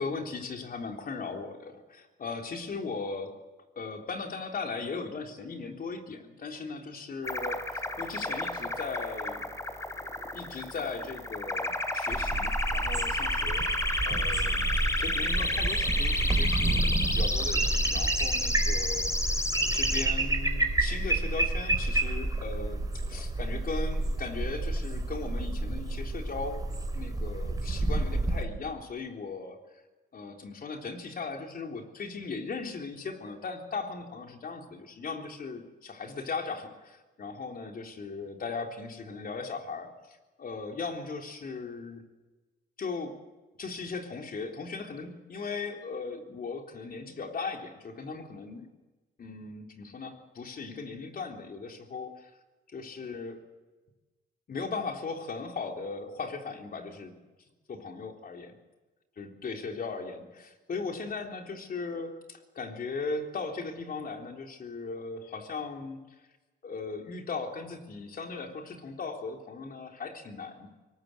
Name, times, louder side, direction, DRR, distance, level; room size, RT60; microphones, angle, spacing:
voice 1, 0.0-3.4 3.8-9.5 10.3-13.7 14.1-19.4 19.7-26.6 26.9-29.8 30.1-42.0 42.8-43.2 43.6-48.7 49.2-52.3 52.7-53.4 54.5-57.2 57.7-58.6 59.2-66.0 66.6-70.7, left 4 dB, 45° left, 3 dB, 3.7 m, -38 dB
sound 1, 7.2-20.1, left 1 dB, 15° left, 2.9 m, -31 dB
sound 2, 12.1-28.4, right 2 dB, 20° right, 3.7 m, -29 dB
22.5 x 20.0 x 8.0 m, 1.2 s
cardioid pair, 90°, 20 cm